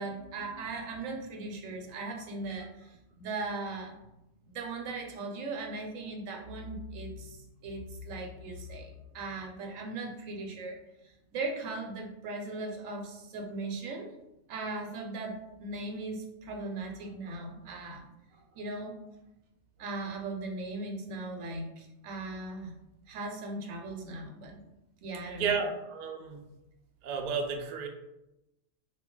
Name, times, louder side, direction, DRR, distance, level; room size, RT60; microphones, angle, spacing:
voice 1, 0.0-4.0 4.4-10.8 11.0-14.1 14.5-18.1 18.3-19.0 19.8-22.7 23.1-24.6 25.0-25.5, right 2 dB, 85° right, 1 dB, 1.1 m, -38 dB
voice 2, 25.4-26.4 27.0-27.9, right 5 dB, 65° right, 3 dB, 0.4 m, -32 dB
2.7 x 2.4 x 3.7 m, 0.90 s
omnidirectional pair, 1.3 m